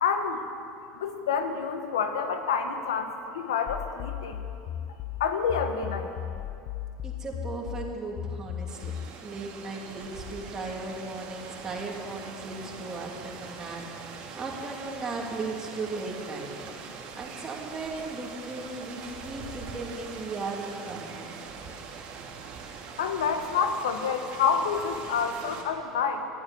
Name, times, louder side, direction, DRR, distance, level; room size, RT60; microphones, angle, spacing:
voice 1, 0.0-0.4 1.0-4.4 5.2-6.1 23.0-26.3, left 6 dB, 90° left, 7 dB, 1.1 m, -28 dB
sound 1, 3.7-9.1, left 10 dB, 55° left, 0.5 m, -36 dB
voice 2, 7.0-8.9 9.2-16.5 17.2-21.3, right 3 dB, 25° right, -2 dB, 2.8 m, -37 dB
Rain, 8.7-25.6, right 5 dB, 55° right, 2.5 m, -42 dB
13.0 x 8.5 x 9.7 m, 2.6 s
hypercardioid pair, 95°, 3 cm